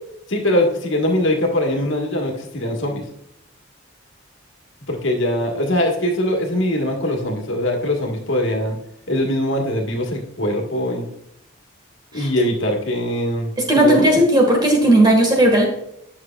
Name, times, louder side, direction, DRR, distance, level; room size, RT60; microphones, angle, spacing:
voice 1, 0.3-3.0 4.9-8.8 9.1-11.0 12.1-13.5 13.7-14.1, left 1 dB, 70° left, 1 dB, 1.5 m, -22 dB
voice 2, 13.6-15.6, right 1 dB, 20° right, 1 dB, 1.6 m, -15 dB
9.5 x 6.3 x 2.4 m, 0.77 s
head